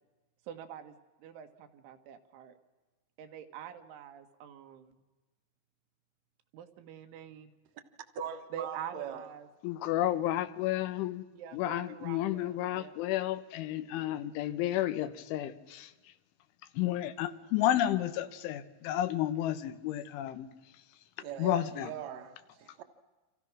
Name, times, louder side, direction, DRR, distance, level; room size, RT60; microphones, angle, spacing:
voice 1, 0.5-2.6 3.2-5.0 6.5-7.5 8.5-9.5 11.3-13.0, right 9 dB, 85° right, 4.0 m, -45 dB
voice 2, 8.1-9.2 21.2-22.8, right 8 dB, 65° right, 1.8 m, -41 dB
voice 3, 9.6-11.2 11.5-15.9 16.8-20.5 21.4-21.9, left 13 dB, 90° left, 3.5 m, -31 dB
29.0 x 26.0 x 6.2 m
omnidirectional pair, 5.4 m